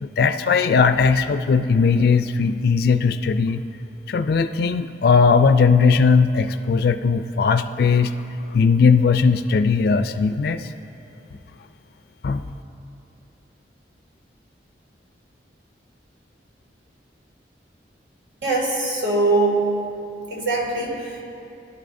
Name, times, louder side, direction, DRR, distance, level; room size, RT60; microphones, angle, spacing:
voice 1, 0.0-3.6 4.1-8.1 8.5-10.7 12.2-12.4, left 5 dB, 60° left, 9 dB, 0.3 m, -18 dB
voice 2, 18.4-19.7 20.3-21.2, right 2 dB, 85° right, -2 dB, 2.3 m, -22 dB
17.0 x 11.0 x 2.6 m, 2.7 s
head